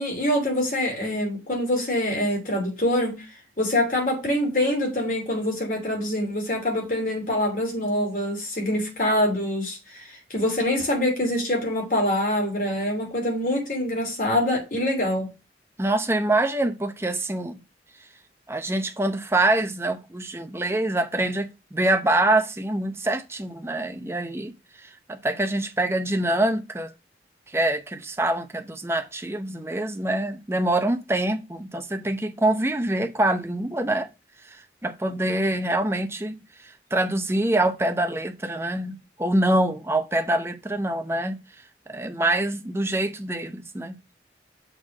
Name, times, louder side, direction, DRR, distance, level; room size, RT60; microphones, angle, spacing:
voice 1, 0.0-3.3 3.6-15.3, left 1 dB, 50° left, 3.1 m, -25 dB
voice 2, 15.8-17.6 18.5-24.5 24.8-26.9 27.5-34.1 34.5-41.4 41.9-44.0, right 1 dB, 15° right, 0.6 m, -25 dB
6.5 x 3.8 x 6.3 m
head